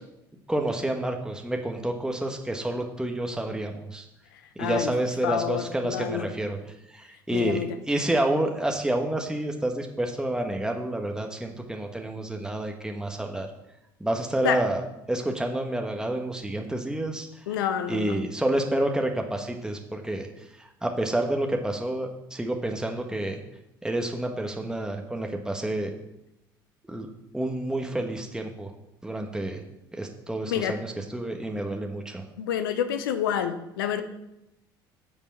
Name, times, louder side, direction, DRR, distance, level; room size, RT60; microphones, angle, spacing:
voice 1, 0.5-4.0 4.6-6.6 6.9-13.5 14.0-14.8 15.1-17.3 17.9-20.3 20.6-23.4 23.8-25.9 26.9-27.1 27.3-28.7 29.0-29.6 30.0-32.2, right 1 dB, 5° right, 3 dB, 1.4 m, -29 dB
voice 2, 4.6-4.9 5.2-6.3 7.3-7.8 14.4-14.7 17.5-18.2 30.5-30.8 32.4-34.0, left 9 dB, 75° left, 10 dB, 0.9 m, -28 dB
9.4 x 5.4 x 7.3 m, 0.89 s
hypercardioid pair, 65°, 12 cm